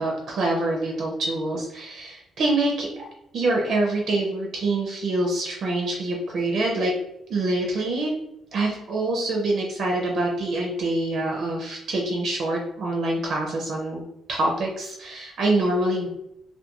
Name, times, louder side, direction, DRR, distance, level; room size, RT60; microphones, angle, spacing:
voice 1, 0.0-3.1 3.3-6.9 7.3-8.1 8.5-14.0 14.3-16.1, right 2 dB, 55° right, 0 dB, 0.5 m, -25 dB
2.3 x 2.2 x 2.9 m, 0.82 s
cardioid pair, 135°, 0 cm